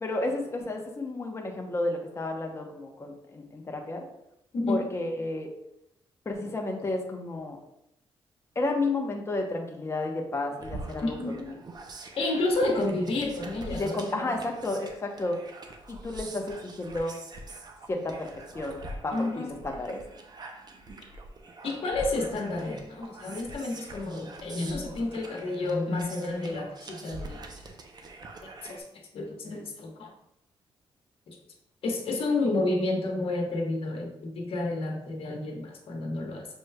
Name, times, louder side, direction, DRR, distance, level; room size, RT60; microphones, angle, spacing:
voice 1, 0.0-4.0 4.7-5.5 6.3-7.6 8.6-11.2 11.5-11.6 13.7-15.4 15.9-17.1 17.9-18.3 18.5-20.0, left 2 dB, 25° left, 2 dB, 0.7 m, -32 dB
voice 2, 4.5-4.8 11.0-11.3 12.2-14.4 19.1-19.5 21.6-27.4 28.6-28.8 29.1-30.1 31.3-31.4 31.8-36.5, left 2 dB, 65° left, 1 dB, 1.1 m, -30 dB
sound 1, 10.6-28.8, right 2 dB, 45° right, 0.6 m, -44 dB
6.4 x 3.1 x 2.2 m, 0.80 s
cardioid pair, 95°, 10 cm